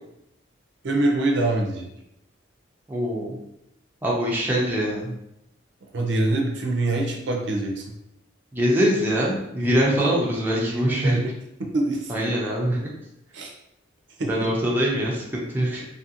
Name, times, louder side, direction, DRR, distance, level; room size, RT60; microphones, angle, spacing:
voice 1, 0.8-1.9 5.9-7.8 10.6-11.3 11.6-12.1 13.3-13.5 14.2-14.3, right 2 dB, 65° right, 1 dB, 0.5 m, -24 dB
voice 2, 2.9-3.4 4.0-5.1 8.5-11.2 12.1-12.9 14.3-15.9, equal, 10° right, -4 dB, 0.4 m, -23 dB
2.7 x 2.5 x 2.7 m, 0.82 s
head